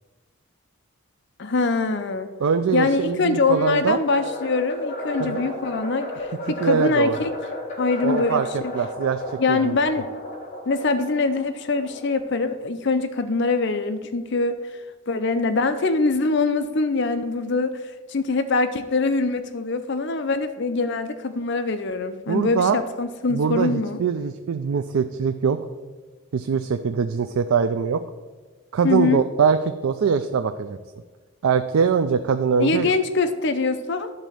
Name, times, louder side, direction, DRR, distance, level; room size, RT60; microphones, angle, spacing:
voice 1, 1.4-2.3 2.7-7.4 7.8-8.7 9.4-10.1 10.7-14.7 15.1-24.0 28.8-29.2 32.6-34.1, left 3 dB, 55° left, 10 dB, 0.5 m, -23 dB
voice 2, 2.4-4.0 5.2-5.4 6.6-7.2 8.0-9.2 9.5-9.8 22.3-22.8 23.3-25.6 26.3-28.0 28.7-30.8 31.4-32.9, right 6 dB, 75° right, 9 dB, 0.4 m, -22 dB
sound 1, 4.1-12.4, left 2 dB, 35° left, 1.5 m, -34 dB
11.0 x 4.0 x 7.5 m, 1.3 s
head